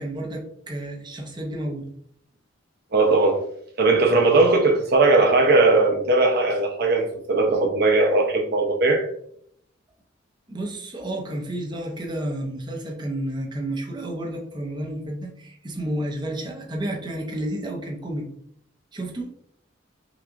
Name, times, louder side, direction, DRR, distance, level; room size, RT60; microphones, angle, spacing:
voice 1, 0.0-1.9 10.5-18.3 18.9-19.3, right 1 dB, 25° right, 0 dB, 0.7 m, -31 dB
voice 2, 2.9-3.4 3.8-9.1, right 3 dB, 55° right, 2 dB, 0.6 m, -19 dB
5.9 x 2.4 x 2.5 m, 0.67 s
head